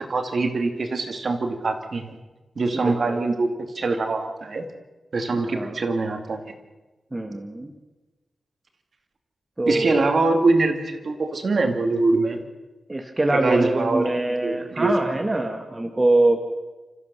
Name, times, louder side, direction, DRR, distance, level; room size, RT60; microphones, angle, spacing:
voice 1, 0.0-2.2 2.6-3.5 3.7-4.6 5.1-6.5 9.7-12.4 13.3-14.1 14.4-14.9 15.3-15.4, right 3 dB, 45° right, 6 dB, 2.4 m, -23 dB
voice 2, 2.8-3.2 5.3-5.8 7.1-7.7 9.6-10.0 12.9-16.4, right 2 dB, 20° right, 3 dB, 1.4 m, -23 dB
29.0 x 14.5 x 6.9 m, 1.2 s
wide cardioid pair, 155°, 0 cm